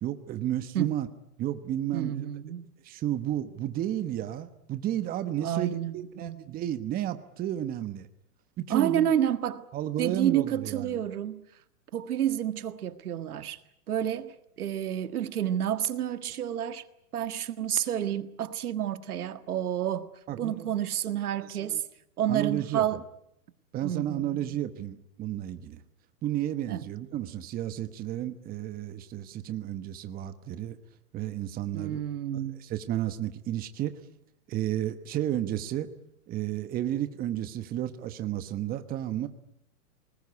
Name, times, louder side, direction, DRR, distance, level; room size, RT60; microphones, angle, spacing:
voice 1, 0.0-1.1 1.4-2.3 2.8-8.1 8.6-9.1 9.7-11.0 20.3-20.7 21.3-21.8 22.3-22.9 23.7-25.8 26.2-30.7 31.1-32.0 32.6-33.9 34.5-35.9 36.3-39.3, right 12 dB, 20° right, 1.2 m, -32 dB
voice 2, 1.9-2.7 5.4-6.4 8.7-9.7 10.0-11.4 11.9-13.6 13.9-16.8 17.1-20.1 20.4-21.8 22.2-23.0 23.8-24.4 26.7-26.9 31.7-32.6, right 10 dB, 75° right, 1.7 m, -29 dB
24.5 x 20.0 x 9.7 m
hypercardioid pair, 140°, 45 cm